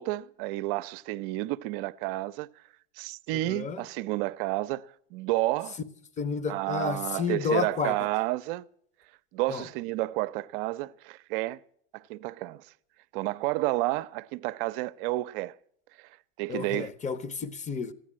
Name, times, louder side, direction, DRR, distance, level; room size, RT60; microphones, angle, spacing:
voice 1, 0.0-2.5 3.0-4.9 5.1-5.8 6.5-8.7 9.3-11.6 11.9-12.6 13.1-15.5 16.4-16.9, right 18 dB, 60° right, 0.6 m, -30 dB
voice 2, 3.3-3.8 6.2-7.9 9.5-9.6 16.5-17.9, left 6 dB, 25° left, 1.1 m, -31 dB
14.5 x 10.5 x 7.4 m
hypercardioid pair, 100°, 30 cm